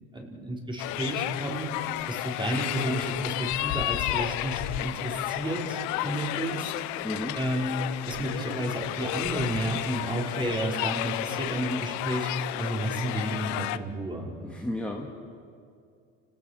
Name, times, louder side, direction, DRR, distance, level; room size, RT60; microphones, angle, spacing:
voice 1, 0.0-6.7 7.3-12.3 12.6-14.3, right 1 dB, 15° right, -1 dB, 5.1 m, -31 dB
sound 1, 0.8-13.8, left 16 dB, 70° left, 0.9 m, -32 dB
voice 2, 7.0-7.3 14.4-15.1, left 1 dB, 5° left, -1 dB, 2.2 m, -33 dB
30.0 x 18.0 x 6.7 m, 2.3 s
supercardioid pair, 100°, 30 cm